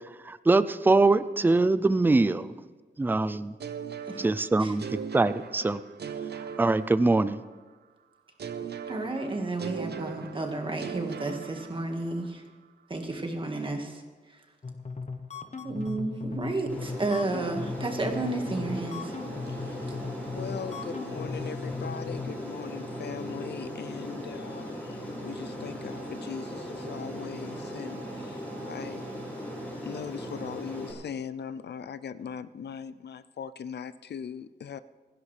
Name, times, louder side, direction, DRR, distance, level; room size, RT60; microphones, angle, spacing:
voice 1, 0.2-2.5 3.0-3.5 4.2-5.8 6.6-7.4, right 3 dB, 10° right, 15 dB, 0.4 m, -23 dB
sound 1, 3.6-7.5 8.4-12.3, right 7 dB, 70° right, 0.7 m, -39 dB
voice 2, 8.9-12.4 12.9-14.5 15.6-19.2 19.9-20.0, right 2 dB, 30° right, 3 dB, 1.7 m, -32 dB
sound 2, 14.6-22.3, left 4 dB, 40° left, 0.9 m, -38 dB
Aircraft, 16.7-30.9, equal, 10° left, 6.1 m, -38 dB
voice 3, 20.3-28.4 28.7-29.0 29.9-34.8, left 7 dB, 75° left, 15 dB, 0.5 m, -40 dB
28.0 x 11.0 x 3.3 m, 1.4 s
wide cardioid pair, 140°, 17 cm